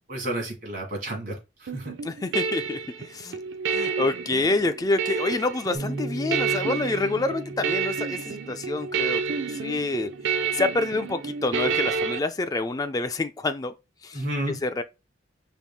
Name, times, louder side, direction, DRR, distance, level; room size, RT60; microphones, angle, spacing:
voice 1, 0.1-1.9 14.1-14.5, right 1 dB, 50° right, 1.7 m, -31 dB
sound 1, 1.7-12.2, right 5 dB, 85° right, 0.4 m, -29 dB
voice 2, 2.0-3.4 3.7-9.2 9.5-10.1 10.5-13.7 14.0-14.8, left 2 dB, 20° left, 0.3 m, -27 dB
Bass guitar, 5.7-12.0, right 2 dB, 5° left, 0.7 m, -40 dB
4.6 x 3.5 x 2.3 m
head